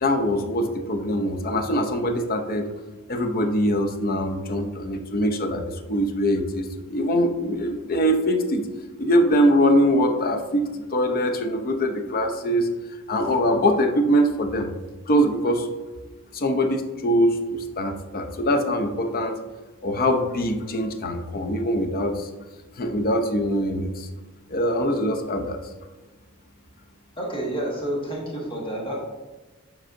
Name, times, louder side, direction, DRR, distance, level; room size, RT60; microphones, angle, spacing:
voice 1, 0.0-2.7 3.1-8.7 9.0-12.7 13.1-14.7 15.1-15.7 16.3-19.4 19.8-22.3 22.8-24.1 24.5-25.6, equal, 40° left, 5 dB, 0.6 m, -23 dB
voice 2, 27.2-29.0, right 1 dB, 25° left, -2 dB, 1.3 m, -29 dB
7.6 x 5.4 x 2.6 m, 1.2 s
head